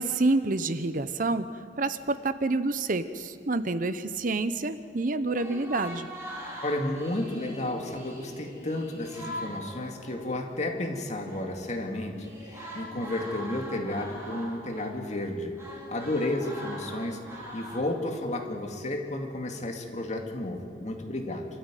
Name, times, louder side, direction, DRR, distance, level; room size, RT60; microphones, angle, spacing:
voice 1, 0.0-1.5 1.8-6.1, right 2 dB, 50° right, 12 dB, 0.9 m, -28 dB
sound 1, 5.3-11.7 12.1-17.8, equal, 15° right, 5.2 m, -42 dB
voice 2, 6.6-15.5 15.9-21.5, left 1 dB, 40° left, 3 dB, 2.4 m, -32 dB
27.0 x 14.0 x 9.1 m, 2.3 s
head